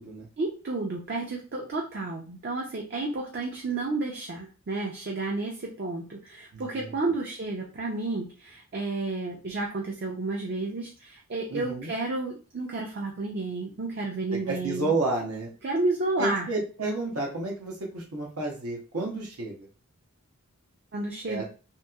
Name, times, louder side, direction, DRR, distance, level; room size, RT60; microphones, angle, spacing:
voice 1, 0.4-14.9 15.6-16.5 20.9-21.4, right 3 dB, 45° right, -1 dB, 0.4 m, -31 dB
voice 2, 6.5-6.9 11.5-11.9 14.3-15.5 16.2-19.7 21.3-21.4, right 2 dB, 85° right, -1 dB, 0.8 m, -31 dB
2.9 x 2.8 x 2.3 m, 0.36 s
head